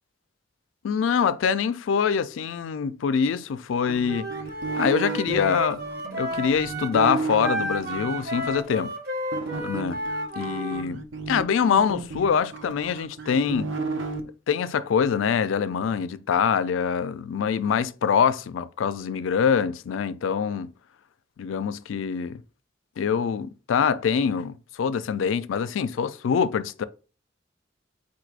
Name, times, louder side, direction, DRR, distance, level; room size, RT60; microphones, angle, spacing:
voice 1, 0.8-4.3 4.8-5.8 6.2-8.9 9.6-10.0 10.4-11.0 11.3-13.7 14.5-20.7 21.4-22.4 23.0-26.8, left 6 dB, 85° left, 0.4 m, -24 dB
sound 1, 3.9-8.6 9.3-14.2, right 4 dB, 80° right, 0.7 m, -33 dB
Wind instrument woodwind instrument, 4.1-10.9, right 1 dB, 55° right, 0.9 m, -32 dB
4.3 x 2.4 x 4.6 m
head